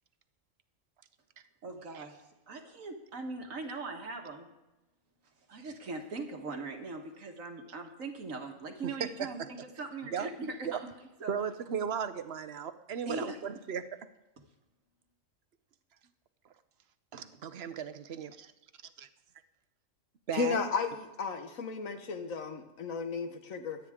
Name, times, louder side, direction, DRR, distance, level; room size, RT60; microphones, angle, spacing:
voice 1, 1.6-4.5 5.5-10.8 11.2-11.3 13.1-13.4, right 3 dB, 85° right, 3 dB, 1.9 m, -40 dB
voice 2, 8.8-9.3 10.1-10.3 10.6-10.8 11.3-13.8 17.1-18.5 19.0-19.1 20.3-20.6, right 7 dB, 60° right, 11 dB, 0.9 m, -36 dB
voice 3, 20.3-23.8, left 5 dB, 90° left, 7 dB, 1.6 m, -34 dB
23.5 x 9.1 x 3.6 m, 1.0 s
omnidirectional pair, 1.3 m